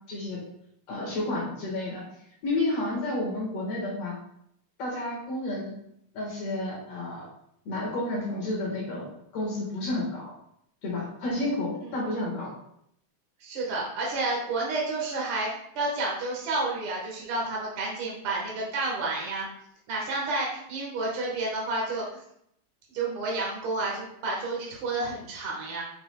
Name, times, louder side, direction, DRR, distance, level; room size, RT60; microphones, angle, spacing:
voice 1, 0.1-0.4 0.9-2.0 2.4-4.2 4.8-5.8 6.1-7.3 7.6-9.1 9.3-10.3 10.8-12.5, left 2 dB, 55° left, -4 dB, 2.1 m, -31 dB
voice 2, 13.4-15.5 15.7-19.5 19.9-22.0 22.9-25.8, right 2 dB, 75° right, -3 dB, 1.2 m, -30 dB
7.7 x 5.8 x 2.2 m, 0.73 s
omnidirectional pair, 4.5 m